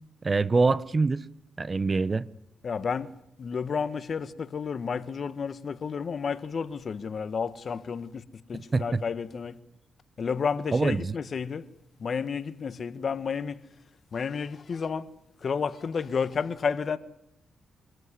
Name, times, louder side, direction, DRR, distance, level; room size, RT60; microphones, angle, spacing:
voice 1, 0.2-1.2 1.6-2.2 8.5-9.0 10.7-11.1, right 3 dB, 35° right, 0.9 m, -25 dB
voice 2, 2.6-3.1 3.4-8.2 8.5-9.6 10.2-11.6 12.0-13.6 14.1-15.1 15.4-17.0, left 6 dB, 55° left, 1.4 m, -31 dB
25.0 x 14.0 x 9.9 m
cardioid pair, 65°, 0 cm